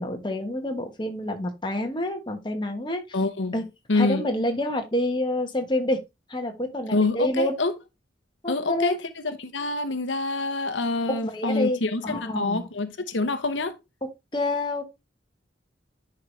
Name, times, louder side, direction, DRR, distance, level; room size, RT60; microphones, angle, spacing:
voice 1, 0.0-3.0 3.5-3.6 3.9-6.0 6.3-7.6 8.4-9.0 11.1-12.6 14.3-14.8, left 1 dB, 25° left, 1.3 m, -27 dB
voice 2, 3.1-3.5 3.9-4.2 6.9-7.7 8.5-13.7, left 3 dB, 75° left, 1.0 m, -26 dB
10.5 x 4.8 x 3.3 m
head